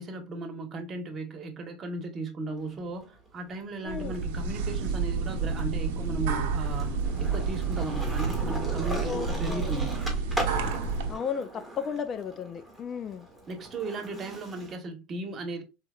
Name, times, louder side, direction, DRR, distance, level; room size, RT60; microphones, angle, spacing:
voice 1, 0.0-10.0 13.5-15.6, right 2 dB, 30° right, 1.0 m, -36 dB
Skateboard, 2.6-4.2 4.5-14.7, right 1 dB, ahead, 1.4 m, -40 dB
sound 1, 3.9-11.2, right 5 dB, 80° right, 0.8 m, -30 dB
voice 2, 9.0-9.7 11.1-13.3, left 7 dB, 35° left, 0.3 m, -34 dB
4.7 x 3.0 x 2.3 m
supercardioid pair, 120°, 0 cm